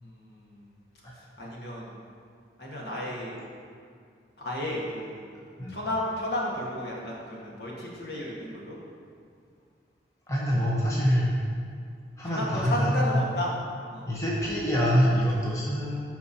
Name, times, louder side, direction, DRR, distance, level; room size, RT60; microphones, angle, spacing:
voice 1, 0.0-0.7 1.1-2.0 2.6-3.4 4.4-5.2 5.7-8.7 12.2-13.5 13.9-14.0, left 1 dB, 65° left, -4 dB, 1.6 m, -33 dB
voice 2, 10.3-11.3 12.2-13.2 14.0-16.0, equal, 20° left, -6 dB, 0.9 m, -25 dB
13.5 x 4.5 x 2.8 m, 2.3 s
head